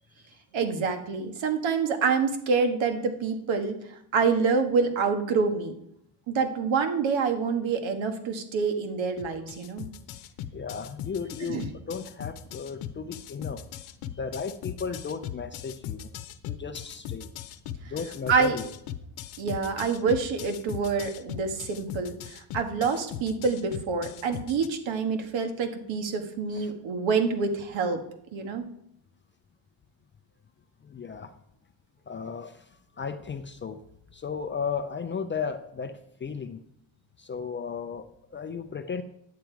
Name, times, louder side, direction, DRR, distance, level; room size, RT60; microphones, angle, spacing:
voice 1, 0.5-5.8 6.3-9.9 11.5-11.7 18.3-18.6 19.4-28.0 28.3-28.6, right 5 dB, 65° right, 6 dB, 1.7 m, -27 dB
sound 1, 9.2-24.7, left 11 dB, 80° left, 0.9 m, -38 dB
voice 2, 10.5-13.6 14.1-16.1 16.4-17.3 17.8-18.7 26.5-26.7 30.8-31.3 32.1-33.8 34.1-36.6 37.2-39.0, left 6 dB, 25° left, 8 dB, 0.4 m, -35 dB
10.5 x 8.8 x 4.6 m, 0.75 s
cardioid pair, 155°, 49 cm